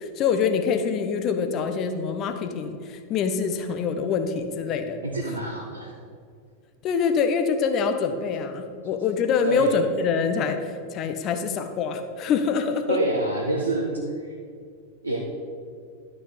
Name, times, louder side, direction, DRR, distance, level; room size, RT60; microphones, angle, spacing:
voice 1, 0.0-5.0 6.8-13.0, left 6 dB, 35° left, 7 dB, 0.9 m, -25 dB
voice 2, 5.0-5.9 9.4-9.7 12.9-13.9 14.2-14.3 15.0-15.2, right 1 dB, 80° right, -2 dB, 1.2 m, -26 dB
11.5 x 6.0 x 5.1 m, 2.2 s
figure-of-eight pair, 90°, 0 cm